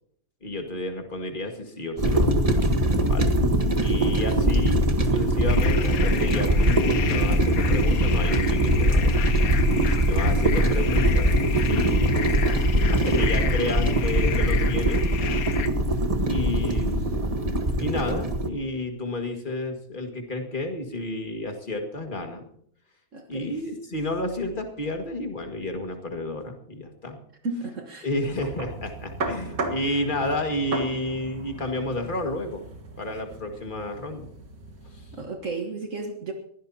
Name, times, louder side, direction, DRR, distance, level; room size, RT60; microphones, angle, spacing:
voice 1, 0.4-2.3 3.1-3.3 3.7-4.8 5.1-9.1 10.1-11.3 11.7-12.5 12.9-15.0 16.3-17.3 17.8-22.5 23.3-27.2 28.0-32.6 33.0-34.3, left 2 dB, 35° left, 4 dB, 2.1 m, -31 dB
sound 1, 2.0-18.5, right 1 dB, 25° right, 1.4 m, -22 dB
sound 2, 5.5-15.7, left 9 dB, 75° left, 1.2 m, -34 dB
voice 2, 23.1-23.5 27.4-28.1 35.1-36.3, right 3 dB, 60° right, 4 dB, 1.8 m, -33 dB
sound 3, 28.3-35.3, right 2 dB, 75° right, 2.3 m, -36 dB
22.5 x 16.0 x 2.9 m, 0.66 s
omnidirectional pair, 1.6 m